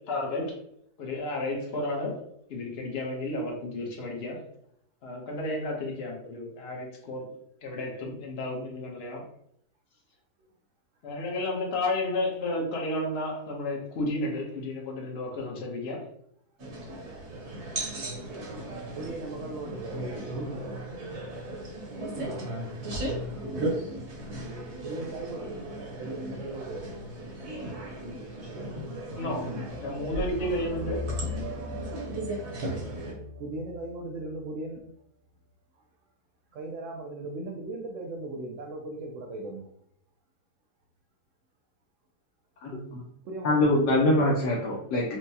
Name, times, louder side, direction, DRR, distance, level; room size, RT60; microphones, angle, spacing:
voice 1, 0.1-0.6 1.0-2.2 2.5-4.4 5.0-7.3 7.6-9.2 11.0-16.0 29.1-29.5 29.8-31.0, left 1 dB, 50° left, -1 dB, 0.8 m, -32 dB
sound 1, 16.6-33.1, right 1 dB, 50° right, 1.0 m, -36 dB
voice 2, 18.9-20.8 23.4-23.8 24.8-25.7 26.0-27.0 33.4-34.9 36.5-39.7 43.2-44.4, right 2 dB, 90° right, 1 dB, 0.6 m, -38 dB
sound 2, 29.7-34.4, left 2 dB, 70° right, 1.3 m, -38 dB
voice 3, 42.6-43.0 43.4-45.2, left 1 dB, 75° left, -3 dB, 1.2 m, -24 dB
4.5 x 2.1 x 2.7 m, 0.71 s
omnidirectional pair, 1.9 m